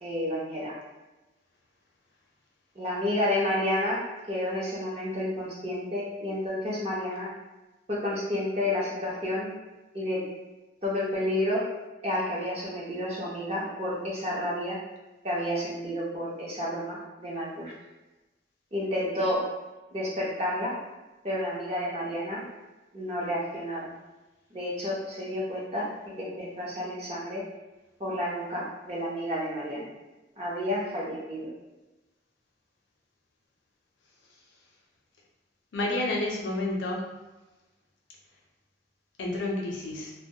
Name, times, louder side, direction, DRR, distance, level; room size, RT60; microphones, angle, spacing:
voice 1, 0.0-0.7 2.8-7.3 7.9-9.5 9.9-10.3 10.8-11.7 12.0-14.8 15.2-17.7 18.7-19.5 19.9-20.8 21.2-22.4 22.9-23.9 24.5-25.9 26.2-27.4 28.0-29.9 30.4-31.5, left 1 dB, 35° right, -6 dB, 0.6 m, -30 dB
voice 2, 35.7-37.1 39.2-40.1, left 2 dB, 90° left, -1 dB, 0.5 m, -30 dB
2.2 x 2.1 x 2.7 m, 1.1 s
head